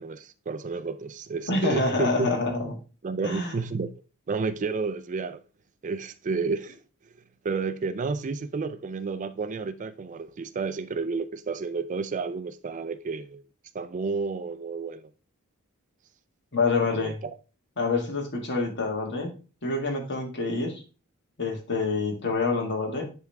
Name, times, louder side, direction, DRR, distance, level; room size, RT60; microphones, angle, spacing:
voice 1, 0.0-2.3 3.0-3.9 4.3-5.4 5.8-6.8 7.4-13.4 13.7-15.1 16.8-17.3, right 4 dB, 35° right, 0.4 m, -31 dB
voice 2, 1.5-2.7 3.2-3.6 16.5-17.2 17.8-19.3 19.6-20.8 21.4-23.0, left 3 dB, 55° left, 1.7 m, -27 dB
10.5 x 3.6 x 3.4 m
head